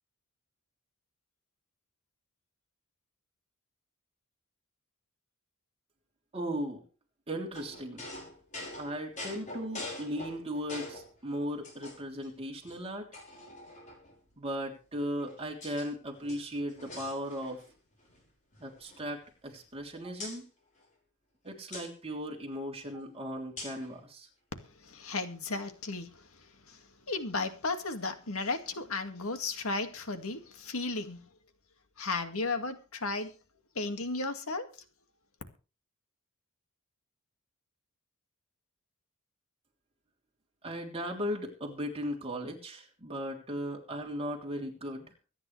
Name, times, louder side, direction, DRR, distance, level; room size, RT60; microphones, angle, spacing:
voice 1, 6.3-6.8 7.3-8.1 8.8-13.1 14.4-17.6 18.6-20.4 21.4-24.3 40.6-45.1, equal, 25° right, 3.4 m, -37 dB
sound 1, 7.5-11.1 11.6-12.3 12.7-12.8 13.1-14.2 14.9-15.9 16.2-17.7 18.0-18.2 18.5-19.8 20.2-20.4 21.7-21.9 23.6-23.9, left 2 dB, 35° left, 5.4 m, -45 dB
voice 2, 24.9-26.1 26.7-26.8 27.1-31.2 32.0-33.3 33.8-34.7, left 3 dB, 70° left, 2.2 m, -34 dB
24.5 x 9.8 x 3.4 m
head